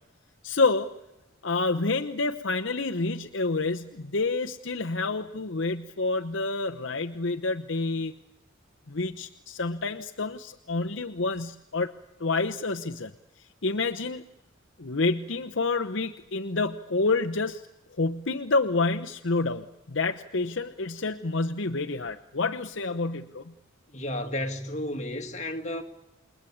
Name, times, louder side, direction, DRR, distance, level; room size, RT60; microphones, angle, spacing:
voice 1, 0.4-0.9 1.4-8.1 8.9-11.9 12.2-13.1 13.4-14.2 14.8-17.6 18.0-23.5, left 3 dB, 60° left, 0.9 m, -28 dB
voice 2, 23.9-25.8, left 1 dB, 35° left, 2.4 m, -32 dB
28.5 x 21.5 x 8.7 m
head